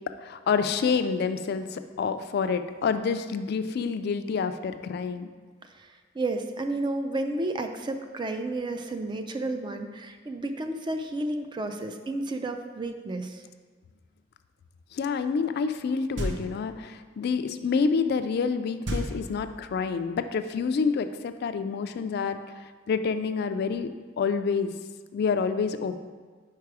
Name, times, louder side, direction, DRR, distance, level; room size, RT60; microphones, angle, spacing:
voice 1, 0.2-5.3 14.9-23.9 24.2-24.7 25.1-26.0, left 5 dB, 55° left, 10 dB, 0.3 m, -28 dB
voice 2, 6.1-13.4, right 2 dB, 25° right, 7 dB, 0.4 m, -31 dB
sound 1, 16.2-16.8 18.8-19.9, equal, 70° right, 0.7 m, -33 dB
4.7 x 4.7 x 4.7 m, 1.4 s
head